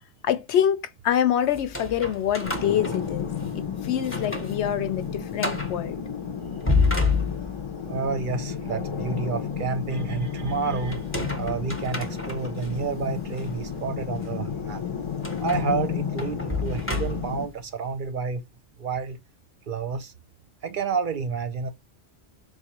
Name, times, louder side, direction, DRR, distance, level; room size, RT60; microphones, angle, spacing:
voice 1, 0.2-3.3 3.5-6.0, left 9 dB, 80° left, 0.9 m, -25 dB
sound 1, 1.5-3.6 4.0-4.6 4.9-5.0 5.4-5.8 6.4-7.8 10.9-12.7 13.3-13.5 15.2-17.5, left 3 dB, 15° left, 0.7 m, -29 dB
sound 2, 2.4-17.4, left 7 dB, 40° left, 0.4 m, -32 dB
voice 2, 7.9-11.1 11.4-14.8 15.4-18.4 18.8-19.2 19.7-20.1 20.6-21.7, right 5 dB, 55° right, 0.6 m, -29 dB
4.4 x 2.4 x 2.9 m
omnidirectional pair, 1.1 m